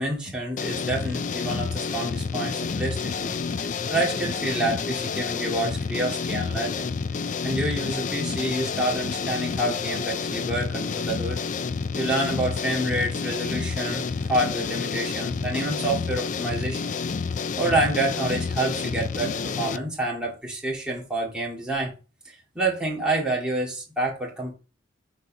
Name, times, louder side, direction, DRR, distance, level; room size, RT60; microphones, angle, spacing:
voice 1, 0.0-3.4 3.6-6.9 7.4-11.4 12.0-16.9 17.6-21.9 22.3-24.5, right 1 dB, 5° right, 2.1 m, -28 dB
sound 1, 0.6-19.8, left 5 dB, 40° left, 0.3 m, -29 dB
6.5 x 4.2 x 5.0 m
head